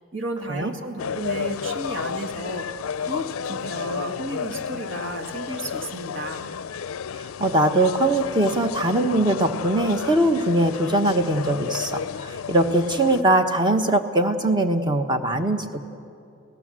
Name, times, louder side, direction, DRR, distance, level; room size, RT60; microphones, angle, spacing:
voice 1, 0.0-2.7 3.0-6.5, right 1 dB, 65° right, 4 dB, 2.0 m, -33 dB
sound 1, 1.0-13.2, left 7 dB, 90° left, 0.4 m, -32 dB
voice 2, 7.2-15.8, right 1 dB, 20° right, 5 dB, 1.2 m, -21 dB
29.5 x 17.5 x 7.6 m, 2.6 s
head